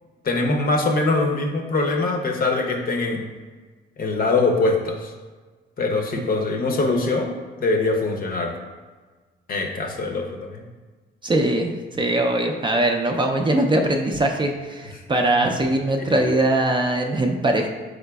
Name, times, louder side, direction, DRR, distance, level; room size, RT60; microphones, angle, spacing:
voice 1, 0.2-3.3 4.0-5.1 5.8-7.3 7.6-8.6 9.5-10.6 14.9-15.0 16.0-16.2, left 3 dB, 45° left, 3 dB, 0.7 m, -23 dB
voice 2, 11.2-11.7 12.0-17.7, right 1 dB, 25° right, 2 dB, 0.4 m, -21 dB
4.9 x 3.9 x 2.3 m, 1.4 s
cardioid pair, 90°, 20 cm